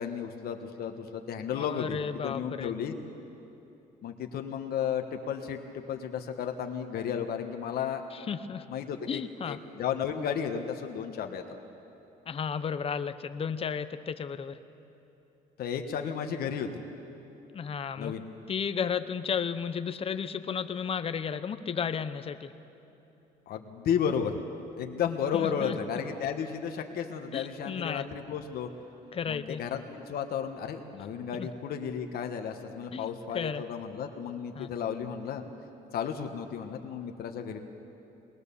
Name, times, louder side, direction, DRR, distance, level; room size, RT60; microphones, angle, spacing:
voice 1, 0.0-2.9 4.0-8.0 8.7-11.4 15.6-16.7 18.0-18.2 23.5-24.3 24.7-28.7 29.3-35.4 35.9-37.6, left 7 dB, 65° left, 5 dB, 1.4 m, -33 dB
voice 2, 1.6-2.7 8.1-8.7 9.1-9.6 12.3-14.6 17.5-18.1 18.5-22.5 25.3-25.8 27.3-28.1 29.1-29.6 31.4-31.5 32.9-33.1 33.3-33.6 34.5-34.7, left 7 dB, 35° left, 11 dB, 0.9 m, -33 dB
22.0 x 20.5 x 7.0 m, 2.9 s
cardioid pair, 110°, 17 cm